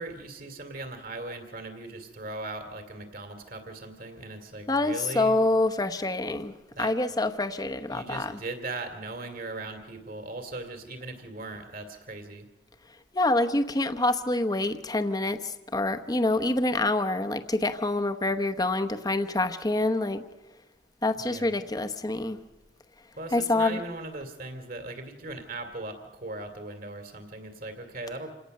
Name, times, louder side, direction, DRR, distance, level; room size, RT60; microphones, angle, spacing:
voice 1, 0.0-5.3 6.7-6.9 7.9-12.5 21.1-21.5 23.2-28.3, right 2 dB, 55° right, 7 dB, 2.6 m, -39 dB
voice 2, 4.7-6.5 6.8-8.4 13.1-20.2 21.0-22.4 23.3-23.8, left 2 dB, 20° left, 8 dB, 0.9 m, -26 dB
27.5 x 17.5 x 6.6 m, 1.2 s
head